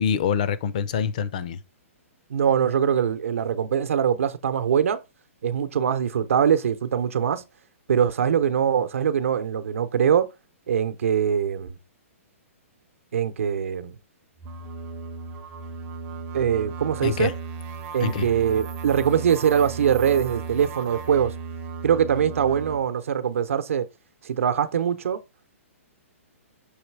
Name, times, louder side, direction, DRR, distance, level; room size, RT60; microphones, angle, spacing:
voice 1, 0.0-1.6 17.0-17.3 18.0-18.3, left 7 dB, 30° left, 0.5 m, -25 dB
voice 2, 2.3-5.0 5.4-7.4 7.9-10.3 10.7-11.7 13.1-14.0 16.3-17.3 17.9-21.3 21.8-23.9 24.2-25.2, right 8 dB, 65° right, 0.8 m, -22 dB
sound 1, 14.4-22.8, right 5 dB, 15° right, 0.6 m, -35 dB
6.4 x 3.2 x 4.7 m
hypercardioid pair, 175°, 8 cm